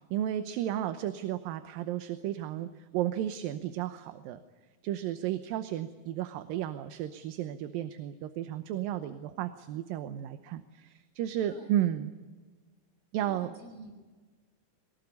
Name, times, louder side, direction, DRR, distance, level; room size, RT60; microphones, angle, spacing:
voice 1, 0.1-4.4 4.8-12.1 13.1-13.5, right 12 dB, 75° right, 10 dB, 2.6 m, -33 dB
voice 2, 13.2-13.9, equal, 45° right, 1 dB, 8.3 m, -48 dB
23.0 x 19.5 x 9.7 m, 1.4 s
omnidirectional pair, 4.3 m